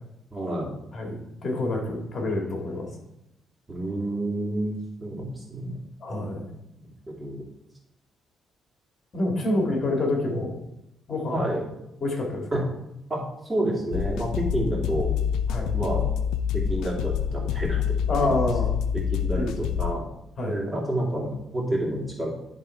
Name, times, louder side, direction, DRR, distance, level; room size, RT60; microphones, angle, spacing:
voice 1, 0.3-0.7 3.7-5.8 7.1-7.4 11.3-11.6 12.5-12.6 13.1-15.1 15.7-16.0 16.5-18.3 19.1-20.0 20.5-22.5, right 1 dB, 20° right, -2 dB, 2.4 m, -29 dB
voice 2, 0.9-2.9 6.0-6.5 9.1-10.6 11.1-11.5 12.0-12.6 15.5-15.7 18.1-18.8 19.3-19.6 20.4-20.6, left 2 dB, 45° left, 1 dB, 2.1 m, -27 dB
sound 1, 13.9-19.9, left 8 dB, 85° left, 0.4 m, -27 dB
10.5 x 3.6 x 4.5 m, 0.86 s
cardioid pair, 90°, 0 cm